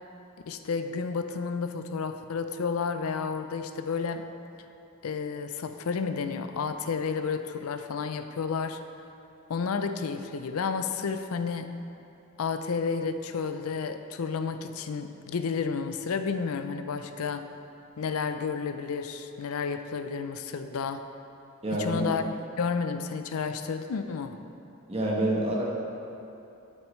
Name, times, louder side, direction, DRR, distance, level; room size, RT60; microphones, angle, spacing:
voice 1, 0.5-4.2 5.0-8.8 9.5-11.7 12.4-17.4 18.0-21.0 21.7-24.4, left 5 dB, 75° left, 8 dB, 0.5 m, -31 dB
voice 2, 21.6-22.0 24.9-25.6, right 1 dB, 25° right, -3 dB, 1.2 m, -27 dB
12.0 x 6.3 x 3.2 m, 2.8 s
head